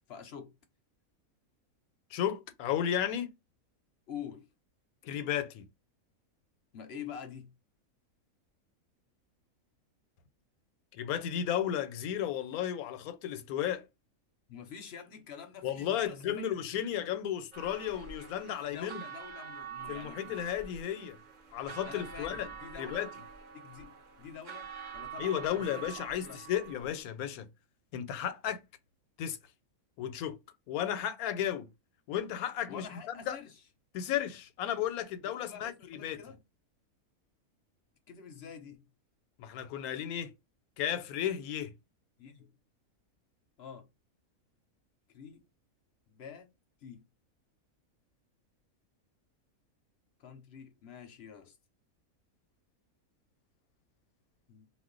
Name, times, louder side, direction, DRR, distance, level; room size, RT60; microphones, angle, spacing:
voice 1, 0.1-0.5 4.1-4.5 6.7-7.5 14.5-16.8 18.7-20.5 21.8-23.1 23.5-24.7 24.9-26.4 32.7-33.6 35.2-36.4 38.1-38.9 39.9-40.2 42.2-42.6 43.6-43.9 45.1-45.4 46.1-46.5 46.8-47.0 50.2-51.6 54.5-54.7, left 7 dB, 60° left, 0.7 m, -47 dB
voice 2, 2.1-3.3 5.0-5.7 10.9-13.8 15.6-19.0 19.9-21.2 21.5-22.5 22.8-23.1 25.2-27.5 27.9-28.6 29.2-29.4 30.0-30.4 30.7-31.7 32.1-33.4 33.9-36.2 39.4-40.3 40.8-41.7, left 10 dB, 85° left, 1.1 m, -34 dB
sound 1, 17.5-27.0, right 7 dB, 50° right, 0.5 m, -46 dB
2.4 x 2.1 x 3.7 m
omnidirectional pair, 1.5 m